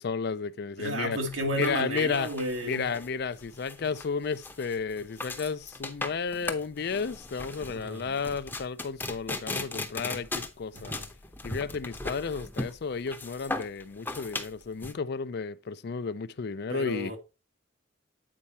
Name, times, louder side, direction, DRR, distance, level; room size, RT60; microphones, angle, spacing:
voice 1, 0.0-1.2 1.5-2.3 2.6-10.9 11.4-17.1, left 5 dB, 55° left, 0.4 m, -32 dB
voice 2, 0.8-2.9 7.7-8.1 10.7-11.1 16.7-17.2, right 1 dB, 80° right, 2.0 m, -32 dB
sound 1, 1.3-14.9, left 2 dB, 10° left, 0.8 m, -38 dB
8.8 x 4.4 x 4.1 m
head